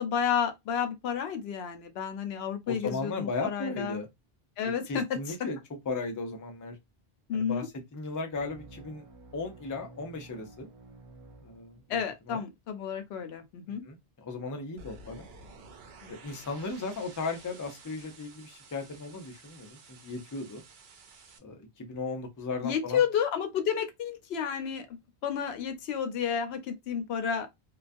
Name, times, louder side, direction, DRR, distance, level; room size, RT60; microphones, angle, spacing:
voice 1, 0.0-4.0 4.6-5.4 7.3-7.7 11.9-13.8 16.0-16.2 22.6-27.5, left 7 dB, 85° left, 0.8 m, -31 dB
voice 2, 2.7-4.1 4.9-5.6 5.9-6.8 7.3-9.0 9.3-10.7 11.4-12.0 12.3-12.4 13.9-15.3 16.1-20.6 21.4-23.0, left 3 dB, 30° left, 0.3 m, -36 dB
sound 1, 8.3-12.2, right 3 dB, 40° right, 0.6 m, -52 dB
sound 2, 14.8-21.4, right 3 dB, 90° right, 0.8 m, -52 dB
2.3 x 2.3 x 2.5 m
omnidirectional pair, 1.0 m